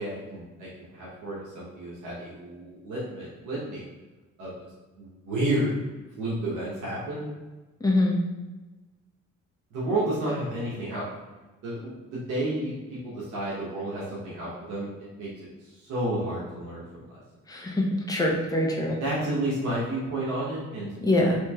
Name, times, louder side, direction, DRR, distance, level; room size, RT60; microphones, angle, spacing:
voice 1, 0.0-3.9 4.4-4.5 5.0-5.8 6.2-7.2 9.7-11.0 11.6-14.9 15.2-15.3 15.6-17.2 19.0-20.9, right 1 dB, 80° right, -7 dB, 0.9 m, -31 dB
voice 2, 7.8-8.2 17.5-19.0 21.0-21.4, left 1 dB, 10° left, -2 dB, 0.6 m, -24 dB
3.1 x 3.0 x 2.3 m, 1.2 s
cardioid pair, 90°, 30 cm